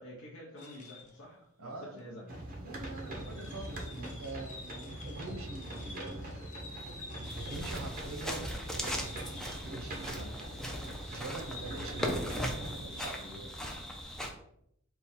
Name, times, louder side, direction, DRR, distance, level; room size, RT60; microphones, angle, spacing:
voice 1, 0.0-2.2, left 1 dB, 80° left, -5 dB, 0.8 m, -48 dB
sound 1, 0.6-1.2 2.0-2.1 2.8-8.1 8.4-10.0 10.5-13.3, left 2 dB, 35° left, 0.8 m, -51 dB
voice 2, 1.6-6.2 7.1-10.3 10.6-10.7 11.1-13.5, right 2 dB, 70° right, 4 dB, 0.8 m, -45 dB
sound 2, 2.3-12.8, right 1 dB, 40° right, 0.8 m, -43 dB
sound 3, 7.2-14.3, equal, 5° left, 0.5 m, -39 dB
3.8 x 2.3 x 4.1 m, 0.73 s
head